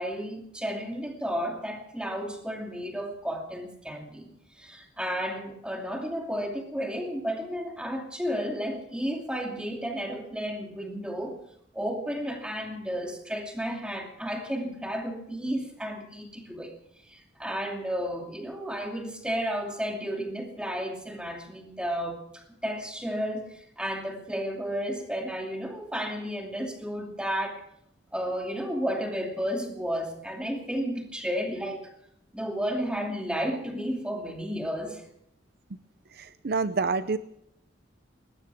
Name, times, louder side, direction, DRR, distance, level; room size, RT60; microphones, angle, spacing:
voice 1, 0.0-4.3 4.6-11.4 11.7-16.7 17.1-27.6 28.1-31.9 32.3-35.0, equal, 5° right, 2 dB, 2.6 m, -32 dB
voice 2, 36.1-37.2, right 4 dB, 55° right, 13 dB, 0.6 m, -28 dB
20.5 x 19.5 x 3.6 m, 0.72 s
head